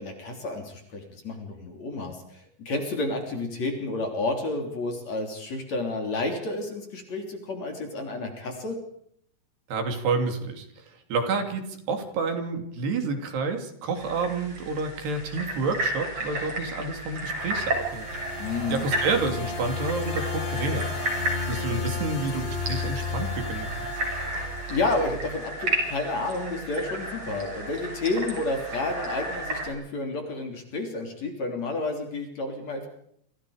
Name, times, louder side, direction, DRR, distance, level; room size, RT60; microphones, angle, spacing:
voice 1, 0.0-8.8 18.4-18.8 24.7-32.9, left 2 dB, 40° left, 3 dB, 4.1 m, -30 dB
voice 2, 9.7-10.7 11.1-18.1 18.7-20.9 21.5-23.7, right 4 dB, 70° right, 5 dB, 4.9 m, -29 dB
sound 1, 14.0-29.7, right 1 dB, 35° right, 8.3 m, -33 dB
sound 2, 17.1-25.3, left 5 dB, 85° left, 5.8 m, -34 dB
28.5 x 27.0 x 5.1 m, 0.70 s
omnidirectional pair, 5.0 m